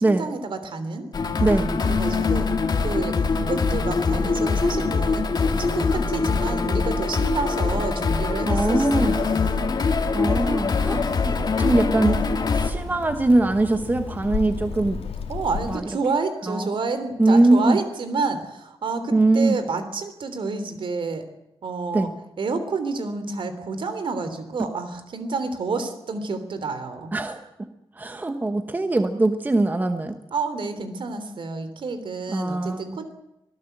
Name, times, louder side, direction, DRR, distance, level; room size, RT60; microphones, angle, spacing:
voice 1, 0.0-1.1 1.6-2.5 2.8-3.1 3.4-5.3 5.6-9.4 15.3-21.2 21.6-22.1 22.4-27.1 30.3-33.1, right 4 dB, 55° right, 10 dB, 3.2 m, -29 dB
sound 1, 1.1-12.7, left 4 dB, 40° left, 2.1 m, -23 dB
voice 2, 1.4-1.7 8.5-9.1 9.8-15.0 15.6-15.9 16.5-16.7 17.2-17.8 19.1-19.6 21.9-22.1 27.1-27.4 27.9-30.2 32.3-33.0, right 2 dB, 15° right, 8 dB, 1.1 m, -22 dB
Child speech kid speaking, 10.2-15.8, left 5 dB, 90° left, 3.0 m, -34 dB
24.5 x 18.0 x 8.0 m, 0.90 s
wide cardioid pair, 180°, 10 cm